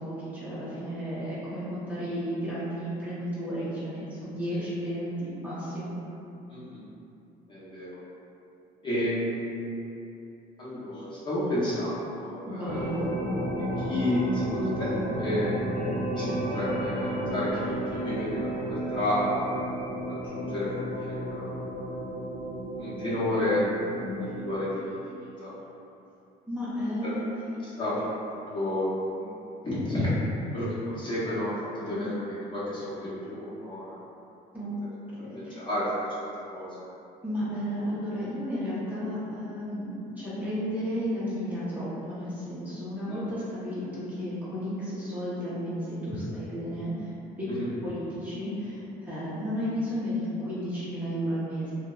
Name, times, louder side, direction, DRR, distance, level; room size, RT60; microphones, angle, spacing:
voice 1, 0.0-5.9 12.4-13.0 23.9-24.3 26.5-27.3 31.9-32.1 34.5-34.7 35.2-35.6 37.2-47.1 47.8-51.7, equal, 10° right, -12 dB, 0.7 m, -33 dB
voice 2, 6.5-6.8 7.5-7.9 8.8-9.7 10.6-12.9 13.6-15.5 16.1-19.5 20.1-21.6 22.8-23.7 24.1-25.5 27.0-27.1 27.8-28.1 28.5-29.3 29.6-34.0 35.1-36.1 36.5-36.8 43.0-43.2 47.5-47.7, left 1 dB, 30° left, -11 dB, 0.8 m, -31 dB
sound 1, 12.7-24.7, right 1 dB, 65° right, 0.9 m, -32 dB
2.5 x 2.0 x 2.3 m, 2.8 s
cardioid pair, 110°, 17 cm